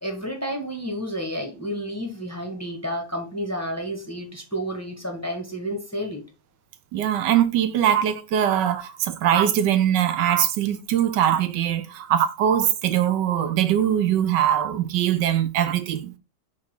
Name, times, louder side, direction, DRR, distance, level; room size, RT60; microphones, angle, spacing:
voice 1, 0.0-6.2, equal, 10° left, 1.0 m, -31 dB
voice 2, 6.9-16.1, right 10 dB, 75° right, 1.4 m, -22 dB
5.8 x 3.7 x 4.6 m
omnidirectional pair, 2.0 m